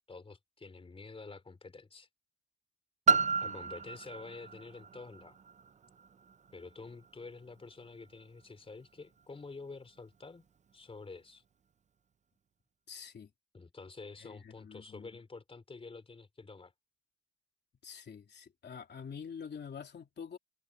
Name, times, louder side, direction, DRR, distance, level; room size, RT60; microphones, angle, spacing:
voice 1, 0.1-2.1 3.4-5.4 6.5-10.5 10.7-11.4 13.5-16.7, left 3 dB, 15° left, 3.6 m, -48 dB
Piano, 3.1-8.5 9.2-9.3, right 5 dB, 25° right, 0.5 m, -33 dB
voice 2, 12.9-13.3 14.2-15.1 17.8-20.4, left 6 dB, 35° left, 3.2 m, -46 dB
cardioid pair, 145°, 31 cm